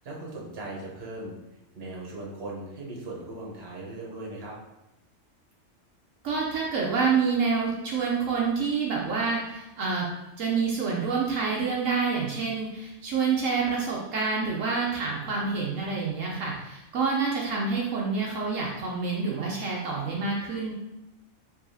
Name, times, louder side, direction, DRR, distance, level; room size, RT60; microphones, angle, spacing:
voice 1, 0.0-1.4 1.7-4.6, right 2 dB, 55° right, -3 dB, 1.2 m, -38 dB
voice 2, 6.2-10.1 10.4-20.7, right 5 dB, 80° right, -3 dB, 1.0 m, -27 dB
4.7 x 3.0 x 2.7 m, 0.93 s
omnidirectional pair, 1.3 m